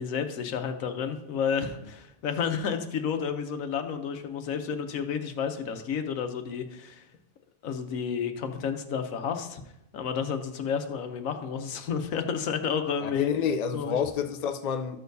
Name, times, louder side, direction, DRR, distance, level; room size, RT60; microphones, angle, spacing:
voice 1, 0.0-7.1 7.6-9.6 9.9-13.3 13.7-14.0, left 7 dB, 85° left, 1.2 m, -31 dB
voice 2, 13.0-15.0, left 7 dB, 60° left, 0.4 m, -29 dB
13.0 x 6.5 x 2.7 m
omnidirectional pair, 1.4 m